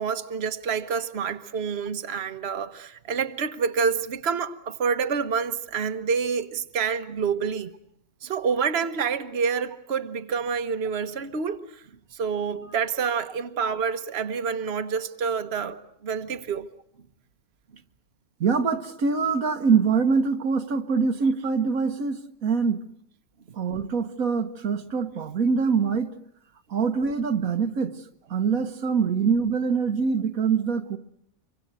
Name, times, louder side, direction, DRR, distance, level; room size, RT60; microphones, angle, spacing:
voice 1, 0.0-7.7 8.2-11.8 12.1-16.7, right 6 dB, 50° right, 1.4 m, -28 dB
voice 2, 18.4-22.8 23.5-26.1 26.7-28.0 28.3-31.0, right 5 dB, 85° right, 1.7 m, -24 dB
26.0 x 24.0 x 8.1 m
omnidirectional pair, 1.4 m